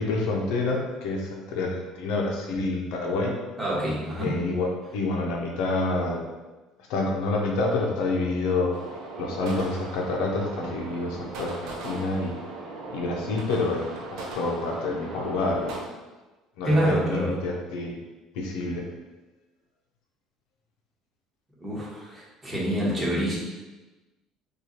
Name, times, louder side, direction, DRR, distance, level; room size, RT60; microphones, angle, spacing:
voice 1, 0.0-3.4 4.2-6.2 6.9-8.7 9.2-12.4 12.9-13.8 14.1-15.7 16.6-17.9 18.3-18.9, left 3 dB, 80° left, 1 dB, 0.6 m, -28 dB
voice 2, 3.6-4.3 16.6-17.4 21.6-23.4, right 1 dB, 15° right, -6 dB, 1.3 m, -26 dB
sound 1, 8.7-15.8, right 3 dB, 75° right, 0.6 m, -38 dB
4.6 x 2.4 x 2.8 m, 1.2 s
supercardioid pair, 100°, 0 cm